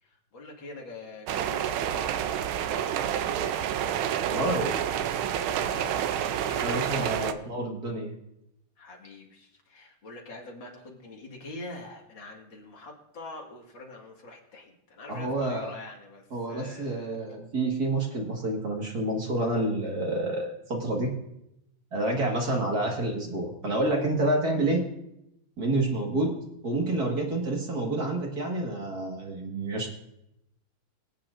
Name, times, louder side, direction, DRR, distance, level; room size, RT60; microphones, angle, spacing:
voice 1, 0.0-3.9 5.6-7.5 8.8-17.2 22.3-22.6, left 2 dB, 60° left, 0 dB, 2.6 m, -44 dB
sound 1, 1.3-7.3, right 10 dB, 75° right, 1.4 m, -29 dB
voice 2, 4.2-4.9 6.6-8.2 15.1-15.7 16.3-21.1 21.9-24.8 25.6-26.4 26.6-29.9, right 2 dB, 45° right, 0 dB, 2.1 m, -28 dB
24.0 x 8.8 x 2.5 m, 0.83 s
omnidirectional pair, 2.3 m